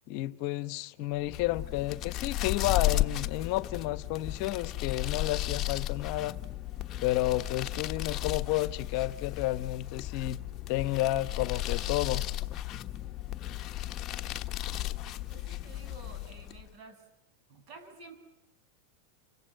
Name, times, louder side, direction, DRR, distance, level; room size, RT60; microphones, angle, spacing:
voice 1, 0.1-6.4 7.0-10.4 10.7-12.3, left 15 dB, 55° left, 1.0 m, -31 dB
sound 1, 1.2-16.7, left 15 dB, 35° left, 1.2 m, -34 dB
voice 2, 15.3-17.0 17.5-18.2, right 3 dB, 45° right, 7.7 m, -51 dB
28.0 x 24.0 x 7.8 m
supercardioid pair, 130°, 0 cm